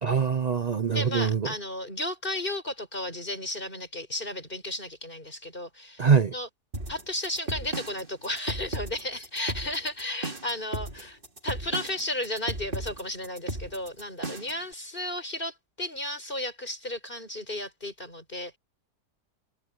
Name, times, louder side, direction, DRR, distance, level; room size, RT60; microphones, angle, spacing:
voice 1, 0.0-1.5 6.0-6.3, right 6 dB, 65° right, 0.4 m, -23 dB
voice 2, 0.9-6.5 6.9-11.2 11.4-18.6, left 1 dB, 30° left, 6.2 m, -34 dB
sound 1, 6.7-14.7, right 1 dB, 30° right, 2.8 m, -35 dB
omnidirectional pair, 1.7 m